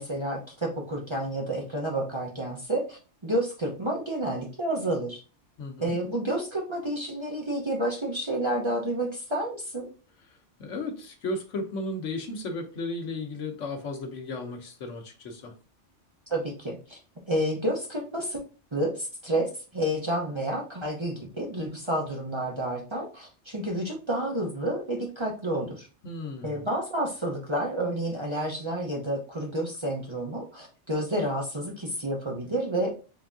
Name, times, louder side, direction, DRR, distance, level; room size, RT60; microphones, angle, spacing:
voice 1, 0.0-5.2 5.8-9.9 16.3-17.0 17.3-18.4 18.7-25.9 26.4-32.9, right 1 dB, 30° right, 0.7 m, -30 dB
voice 2, 5.6-6.0 10.6-15.5 26.0-26.6, left 2 dB, 85° left, 1.2 m, -34 dB
3.9 x 3.5 x 2.5 m
omnidirectional pair, 1.2 m